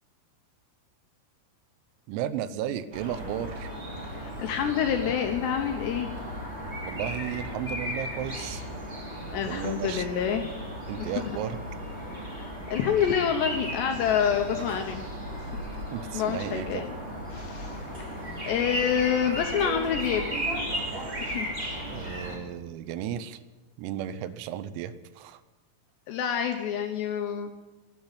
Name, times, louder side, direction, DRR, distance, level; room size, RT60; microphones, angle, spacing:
voice 1, 2.1-3.7 6.8-8.6 9.3-10.1 10.9-11.6 15.9-16.9 21.9-23.4 23.8-25.4, right 10 dB, 85° right, 13 dB, 3.5 m, -34 dB
sound 1, 2.9-22.4, equal, 20° right, 1.8 m, -36 dB
voice 2, 4.0-6.1 9.3-10.5 12.1-15.0 15.3-15.5 16.1-16.9 17.3-18.1 18.4-20.4 21.2-21.5 26.1-27.5, left 8 dB, 75° left, 4 dB, 2.6 m, -28 dB
sound 2, 14.1-16.1 16.4-16.9 17.2-17.6 17.8-19.2 19.5-21.8, right 2 dB, 50° right, 5.4 m, -41 dB
12.5 x 12.0 x 9.8 m, 1.2 s
omnidirectional pair, 6.0 m